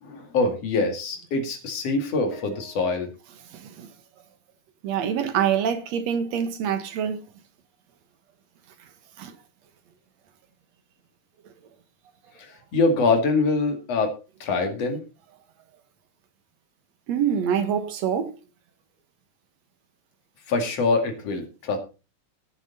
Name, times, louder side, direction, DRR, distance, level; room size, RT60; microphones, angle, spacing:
voice 1, 0.0-3.1 12.4-15.0 20.5-21.8, left 3 dB, 45° left, 3.1 m, -24 dB
voice 2, 3.5-3.9 4.8-7.2 9.2-9.3 17.1-18.3, right 8 dB, 60° right, 2.1 m, -25 dB
17.5 x 7.1 x 4.2 m
omnidirectional pair, 4.2 m